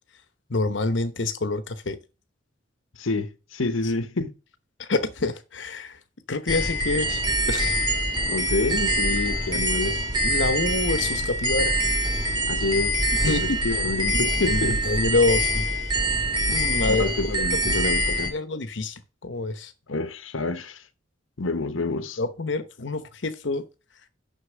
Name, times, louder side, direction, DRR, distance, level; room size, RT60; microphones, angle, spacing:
voice 1, 0.5-2.0 3.8-3.9 4.8-6.0 6.3-7.8 9.5-9.7 10.2-11.8 13.2-13.8 14.1-15.6 16.5-17.1 17.5-17.7 18.2-19.7 22.2-23.6, left 3 dB, 65° left, 0.9 m, -27 dB
voice 2, 3.0-4.3 8.3-10.0 12.5-14.8 16.9-18.3 19.9-20.8 21.4-22.2, left 3 dB, 85° left, 1.0 m, -28 dB
sound 1, 6.5-18.3, equal, 25° right, 2.0 m, -24 dB
6.6 x 6.2 x 6.1 m
head